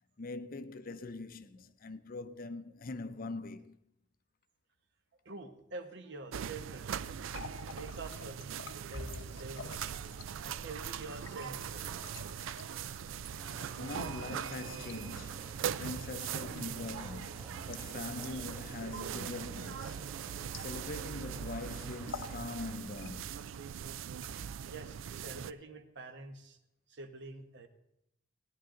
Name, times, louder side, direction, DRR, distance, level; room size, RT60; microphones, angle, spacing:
voice 1, 0.2-3.8 13.5-20.0 20.5-23.4, left 3 dB, 45° left, 0.6 m, -43 dB
voice 2, 5.2-7.3 7.7-10.0 10.4-12.1 24.7-26.6 26.9-27.7, right 3 dB, 60° right, 1.2 m, -47 dB
sound 1, 6.3-25.5, right 8 dB, 80° right, 0.4 m, -41 dB
Water tap faucet, 7.1-21.2 21.4-21.6 22.0-22.4 22.7-23.4 24.0-24.8, left 4 dB, 85° left, 0.9 m, -50 dB
sound 2, 13.4-22.7, right 1 dB, 15° right, 2.1 m, -54 dB
17.5 x 10.0 x 3.8 m
head